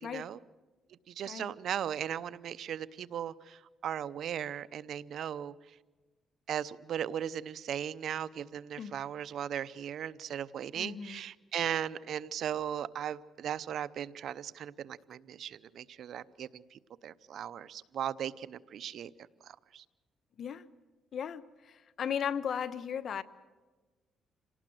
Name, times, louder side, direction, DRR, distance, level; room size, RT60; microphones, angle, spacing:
voice 1, 0.0-0.4 1.1-5.5 6.5-19.1 19.4-19.8, right 9 dB, 70° right, 17 dB, 0.7 m, -37 dB
voice 2, 10.8-11.2 20.4-20.7 21.1-23.2, left 8 dB, 60° left, 13 dB, 1.1 m, -36 dB
26.5 x 18.5 x 7.8 m, 1.3 s
cardioid pair, 90°, 0 cm